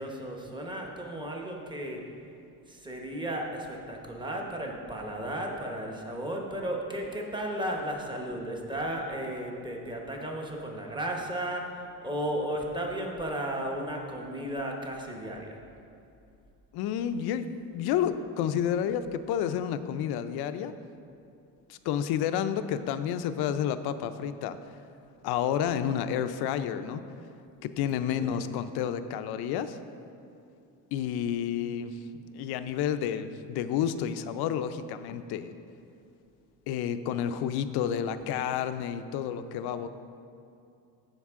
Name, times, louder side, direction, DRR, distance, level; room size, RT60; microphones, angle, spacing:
voice 1, 0.0-2.0 2.7-11.6 12.0-15.6 28.2-28.4, right 1 dB, 10° right, 0 dB, 1.0 m, -34 dB
voice 2, 16.7-20.7 21.7-24.6 25.2-27.0 27.6-29.8 30.9-32.0 32.3-35.5 36.7-39.9, left 9 dB, 75° left, 11 dB, 0.6 m, -30 dB
14.5 x 5.3 x 3.6 m, 2.5 s
cardioid pair, 145°, 39 cm